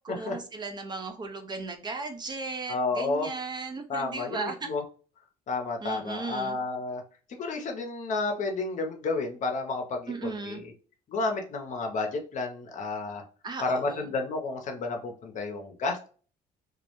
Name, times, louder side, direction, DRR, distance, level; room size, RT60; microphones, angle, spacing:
voice 1, 0.0-4.7 5.8-6.6 10.1-10.6 13.4-14.1, right 3 dB, 25° right, 6 dB, 0.3 m, -36 dB
voice 2, 2.7-3.3 3.9-4.8 5.5-7.0 7.3-10.7 11.1-13.2 13.6-16.1, left 3 dB, 45° left, 3 dB, 0.6 m, -31 dB
2.2 x 2.0 x 2.9 m, 0.40 s
cardioid pair, 110°, 17 cm